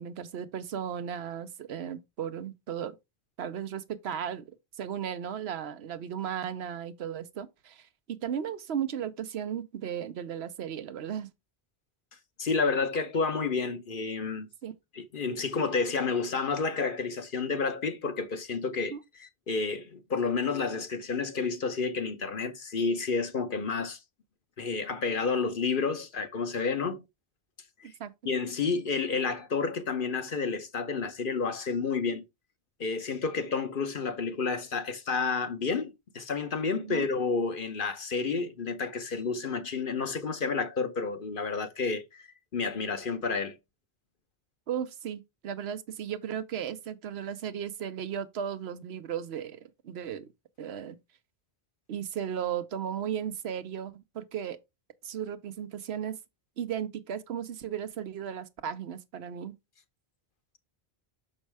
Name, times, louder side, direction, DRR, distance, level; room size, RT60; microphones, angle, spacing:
voice 1, 0.0-3.0 3.4-11.3 14.6-14.7 18.9-19.0 27.8-28.1 36.8-37.1 44.7-50.3 50.6-51.0 51.9-54.6 55.0-56.2 56.6-59.5, right 9 dB, 90° right, 1.0 m, -35 dB
voice 2, 12.4-14.5 14.9-18.9 19.2-24.0 24.6-27.0 27.8-27.9 28.2-32.2 32.8-42.3 42.5-43.6, left 4 dB, 55° left, 1.1 m, -30 dB
6.3 x 5.4 x 3.4 m
omnidirectional pair, 1.0 m